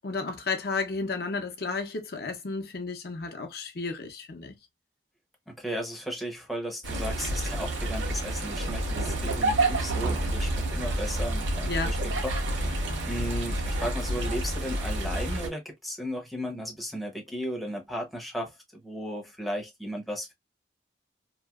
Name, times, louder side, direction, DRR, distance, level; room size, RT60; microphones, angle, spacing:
voice 1, 0.0-4.5 11.7-12.0, left 4 dB, 55° left, 0.6 m, -32 dB
voice 2, 5.5-12.0 12.2-18.6 18.8-20.3, equal, ahead, 0.6 m, -35 dB
sound 1, 6.8-15.5, right 1 dB, 85° right, 1.0 m, -29 dB
2.8 x 2.7 x 2.3 m
head